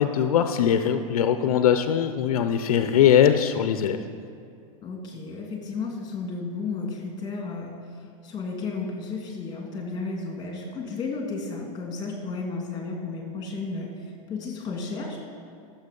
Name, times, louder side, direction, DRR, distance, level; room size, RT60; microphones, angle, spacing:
voice 1, 0.0-4.0, left 9 dB, 80° left, 9 dB, 0.6 m, -21 dB
voice 2, 4.8-7.7 8.2-13.9 14.3-15.2, left 4 dB, 20° left, 1 dB, 2.6 m, -33 dB
13.0 x 7.3 x 5.4 m, 2.5 s
hypercardioid pair, 130°, 18 cm